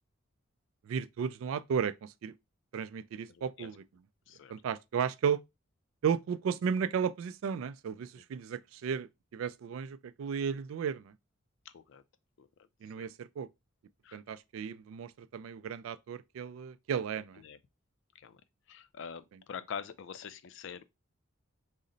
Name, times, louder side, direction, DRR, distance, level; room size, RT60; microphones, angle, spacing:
voice 1, 0.9-2.3 2.7-3.8 4.5-5.4 6.0-11.1 12.8-13.5 14.1-17.4, right 7 dB, 75° right, 0.3 m, -34 dB
voice 2, 3.3-3.7 4.3-4.5 11.7-12.0 12.4-12.7 12.9-13.1 14.0-14.2 17.4-17.6 18.2-18.4 18.7-20.8, left 7 dB, 65° left, 0.4 m, -45 dB
3.8 x 2.1 x 3.8 m
head